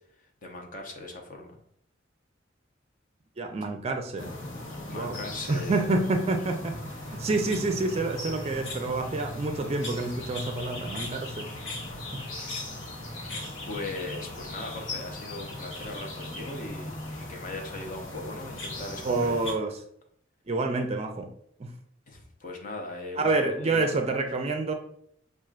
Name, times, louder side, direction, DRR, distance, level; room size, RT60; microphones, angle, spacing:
voice 1, 0.4-1.6 4.9-5.9 12.4-12.6 13.7-19.4 22.1-24.0, left 2 dB, 45° left, 2 dB, 0.7 m, -39 dB
voice 2, 3.4-4.3 4.9-5.2 5.5-11.5 12.1-12.2 19.0-19.8 20.5-21.3 21.6-21.7 23.2-24.7, right 3 dB, 35° right, 5 dB, 0.4 m, -28 dB
sound 1, 4.2-19.5, left 1 dB, 80° left, 0.9 m, -38 dB
5.9 x 2.4 x 2.4 m, 0.68 s
head